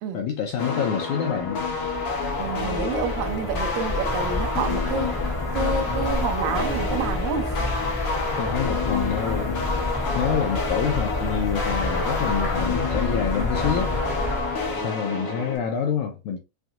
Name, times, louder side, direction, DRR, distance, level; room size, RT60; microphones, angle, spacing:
voice 1, 0.1-1.6 8.4-9.6 10.1-13.9 14.8-16.4, left 7 dB, 85° left, 1.7 m, -27 dB
sound 1, 0.6-15.6, left 4 dB, 60° left, 1.6 m, -29 dB
sound 2, 1.4-14.9, left 2 dB, 25° left, 0.5 m, -29 dB
voice 2, 2.4-5.2 5.5-7.6, right 6 dB, 80° right, 2.2 m, -29 dB
5.8 x 2.6 x 2.4 m
omnidirectional pair, 4.0 m